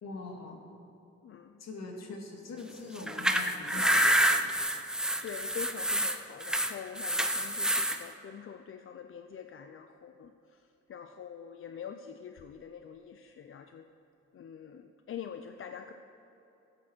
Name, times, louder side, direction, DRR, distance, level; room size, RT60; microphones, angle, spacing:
voice 1, 0.0-0.6 1.6-4.7, left 3 dB, 60° left, 1 dB, 2.1 m, -42 dB
voice 2, 1.2-1.5 3.7-3.9 5.2-10.3 10.9-13.8 14.3-15.9, left 7 dB, 45° left, 7 dB, 0.5 m, -44 dB
sound 1, 3.0-8.0, right 1 dB, ahead, 0.7 m, -28 dB
13.0 x 8.9 x 4.5 m, 3.0 s
cardioid pair, 90°, 30 cm